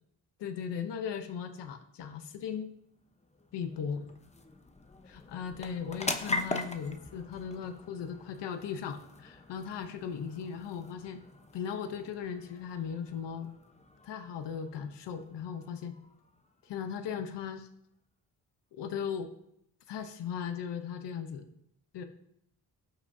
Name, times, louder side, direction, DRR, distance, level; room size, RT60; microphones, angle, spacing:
voice 1, 0.4-2.7 3.5-4.0 5.1-11.2 11.5-13.5 14.0-15.9 16.6-17.7 18.7-19.3 19.9-21.5 21.9-22.0, left 7 dB, 90° left, 7 dB, 0.8 m, -37 dB
sound 1, 2.6-17.5, left 2 dB, 15° left, 0.8 m, -43 dB
17.5 x 6.0 x 2.7 m, 0.76 s
cardioid pair, 80°, 41 cm